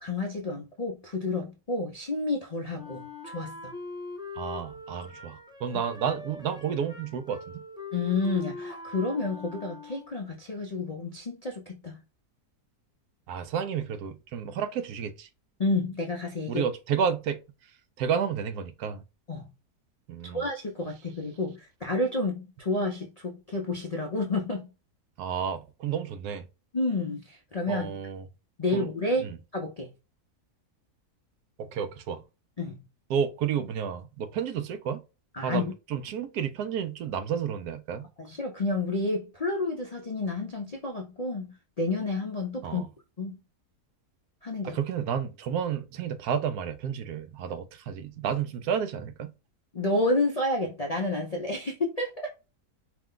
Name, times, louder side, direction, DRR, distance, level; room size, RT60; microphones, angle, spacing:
voice 1, 0.0-3.7 7.9-12.0 15.6-16.6 19.3-19.5 20.3-24.7 26.7-27.9 28.6-29.3 29.5-29.9 32.6-32.8 35.3-35.7 38.2-42.8 43.2-43.4 44.4-44.8 49.7-52.3, left 2 dB, 55° left, 0.4 m, -30 dB
Wind instrument woodwind instrument, 2.7-10.3, left 3 dB, 5° right, 0.4 m, -42 dB
voice 2, 4.4-7.6 13.3-15.3 16.5-17.4 18.0-19.0 20.1-20.5 25.2-26.4 27.7-28.2 28.7-28.9 29.2-29.4 31.6-32.2 33.1-35.0 35.4-38.1 42.6-42.9 44.6-49.3, right 7 dB, 80° right, 1.1 m, -31 dB
4.8 x 2.2 x 3.7 m
omnidirectional pair, 1.6 m